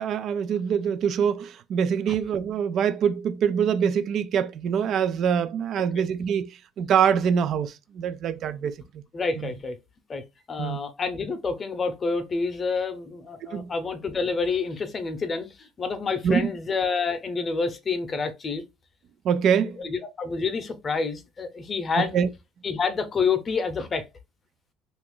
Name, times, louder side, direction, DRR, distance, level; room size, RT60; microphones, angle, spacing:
voice 1, 0.0-6.5 6.8-8.7 9.4-9.5 10.6-10.8 13.5-13.7 16.2-16.5 19.2-19.8 22.0-22.3, right 7 dB, 55° right, 0.4 m, -24 dB
voice 2, 9.1-9.8 10.1-18.6 19.8-22.2 22.6-24.0, left 4 dB, 30° left, 0.7 m, -28 dB
2.8 x 2.5 x 3.7 m
cardioid pair, 105°, 0 cm